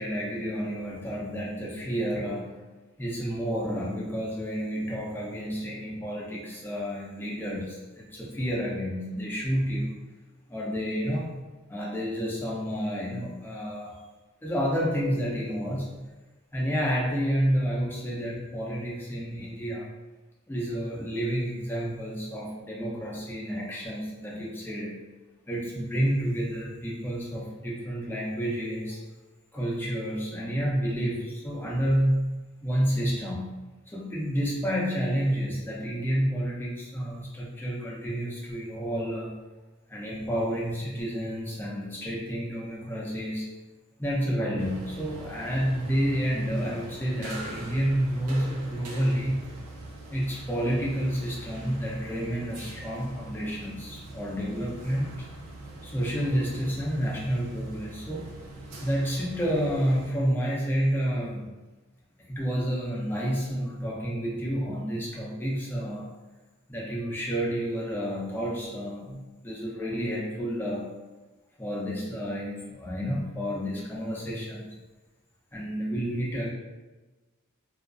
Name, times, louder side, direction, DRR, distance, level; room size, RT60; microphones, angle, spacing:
voice 1, 0.0-2.5 3.0-10.0 10.5-11.4 11.7-14.0 14.4-16.0 16.5-19.9 20.5-24.9 25.5-29.0 29.5-32.4 32.6-33.4 33.9-39.4 39.9-43.5 44.0-49.4 50.1-55.2 55.8-58.3 58.8-61.4 62.3-66.1 66.7-70.9 71.6-74.7 75.5-76.5, equal, 10° left, -5 dB, 0.4 m, -30 dB
sound 1, 44.6-60.1, right 2 dB, 90° right, 0.5 m, -43 dB
2.4 x 2.3 x 2.2 m, 1.2 s
head